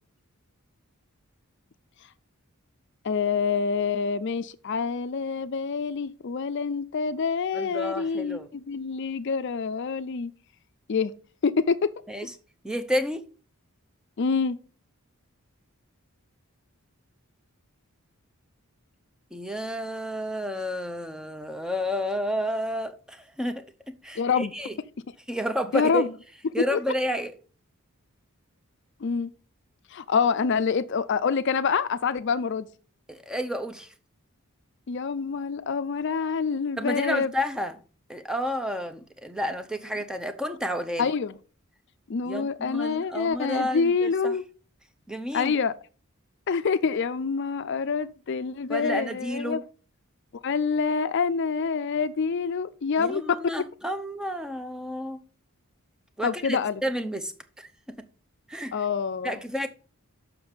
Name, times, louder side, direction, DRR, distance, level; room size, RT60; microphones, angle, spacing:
voice 1, 3.0-10.3 10.9-11.1 11.4-11.9 14.2-14.6 24.2-24.5 25.7-26.1 26.6-26.8 29.0-29.3 29.9-32.7 34.9-37.3 41.0-41.4 42.1-44.4 45.3-45.7 46.5-49.6 50.4-53.4 56.2-56.8 58.7-59.4, left 5 dB, 55° left, 0.4 m, -26 dB
voice 2, 7.5-8.5 12.1-12.3 12.6-13.3 19.3-24.8 25.3-26.1 26.5-27.3 33.1-33.9 36.8-37.7 38.1-41.1 42.3-44.4 45.1-45.5 48.7-49.6 53.0-55.2 56.2-57.7 58.5-58.7 59.2-59.7, equal, 5° right, 0.6 m, -31 dB
6.9 x 5.8 x 5.5 m
head